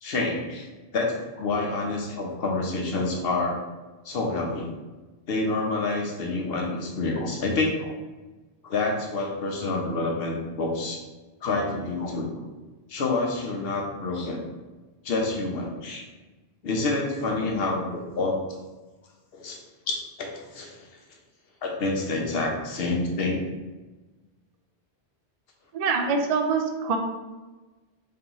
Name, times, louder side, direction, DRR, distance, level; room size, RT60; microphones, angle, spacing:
voice 1, 0.0-0.7 0.9-3.6 4.0-4.7 5.3-7.9 8.6-11.0 11.4-12.3 12.9-14.4 15.0-16.0 16.6-18.4 19.3-19.6 19.9-20.9 21.6-23.4, left 3 dB, 65° left, 1 dB, 0.9 m, -28 dB
voice 2, 25.7-27.0, right 5 dB, 55° right, 4 dB, 0.4 m, -24 dB
3.3 x 2.9 x 3.8 m, 1.2 s
omnidirectional pair, 1.1 m